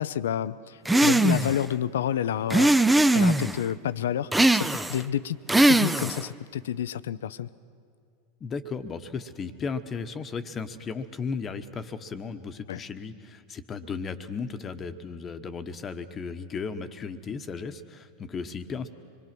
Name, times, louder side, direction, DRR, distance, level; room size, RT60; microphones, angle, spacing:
voice 1, 0.0-2.7 3.1-5.4 5.7-7.5 12.7-12.8, left 10 dB, 75° left, 16 dB, 0.6 m, -29 dB
sound 1, 0.9-1.6 2.5-3.6 4.3-5.0 5.5-6.3, right 1 dB, 5° right, 0.6 m, -20 dB
voice 2, 8.4-18.9, left 5 dB, 30° left, 9 dB, 1.2 m, -35 dB
25.0 x 21.5 x 6.1 m, 2.3 s
hypercardioid pair, 95°, 0 cm